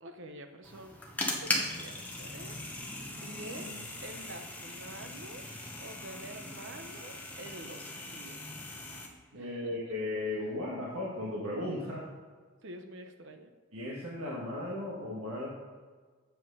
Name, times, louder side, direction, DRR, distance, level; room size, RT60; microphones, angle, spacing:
voice 1, 0.0-2.6 3.2-8.5 9.4-10.0 12.6-13.5, right 1 dB, 55° right, 6 dB, 0.8 m, -48 dB
sound 1, 0.6-9.1, left 1 dB, 5° left, 1.0 m, -39 dB
voice 2, 9.3-12.0 13.7-15.5, left 1 dB, 75° right, -5 dB, 1.6 m, -36 dB
7.8 x 7.7 x 5.4 m, 1.5 s
head